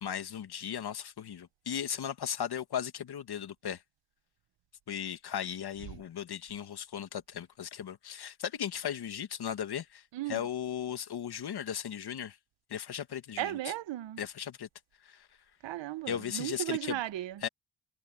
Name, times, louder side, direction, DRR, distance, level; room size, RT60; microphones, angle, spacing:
voice 1, 0.0-3.8 4.9-10.0 10.3-12.4 12.7-13.6 14.2-14.7 15.0-15.3 16.1-17.0 17.4-17.5, left 9 dB, 60° left, 1.9 m, -36 dB
voice 2, 13.4-14.2 15.6-17.4, right 14 dB, 75° right, 0.9 m, -35 dB
cardioid pair, 95°, 44 cm